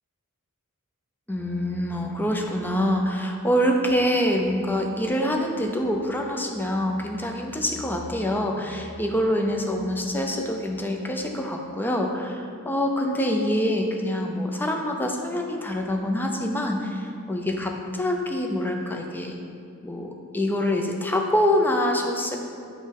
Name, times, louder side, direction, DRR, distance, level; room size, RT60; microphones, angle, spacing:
voice 1, 1.3-19.3 19.8-22.4, left 1 dB, 10° left, 2 dB, 0.5 m, -25 dB
7.6 x 3.1 x 5.2 m, 2.5 s
head